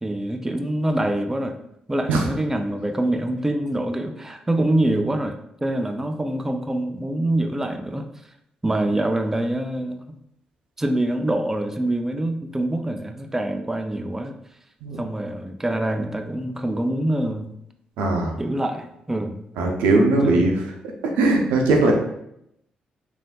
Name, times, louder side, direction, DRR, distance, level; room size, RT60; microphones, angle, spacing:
voice 1, 0.0-1.6 1.9-5.4 5.6-8.1 8.6-10.0 10.8-14.4 15.0-17.5 18.4-19.4 20.2-20.5, right 1 dB, 15° right, 6 dB, 0.3 m, -25 dB
voice 2, 18.0-18.3 19.6-20.5 21.0-21.9, right 2 dB, 85° right, 2 dB, 0.5 m, -19 dB
3.3 x 2.5 x 2.2 m, 0.78 s
supercardioid pair, 55°, 3 cm